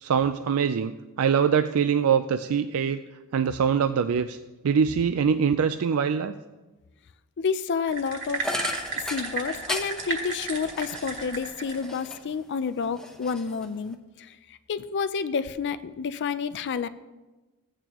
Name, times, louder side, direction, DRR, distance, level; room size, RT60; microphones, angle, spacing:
voice 1, 0.0-0.9 1.2-3.0 3.3-4.4 4.6-6.3, right 7 dB, 75° right, 10 dB, 0.4 m, -23 dB
voice 2, 7.4-8.4 8.9-16.9, left 5 dB, 55° left, 12 dB, 0.4 m, -30 dB
sound 1, 7.9-11.9, right 4 dB, 55° right, 1.9 m, -34 dB
sound 2, 8.4-12.4 12.8-13.9, left 1 dB, 5° left, 0.8 m, -36 dB
15.5 x 8.9 x 3.0 m, 1.1 s
head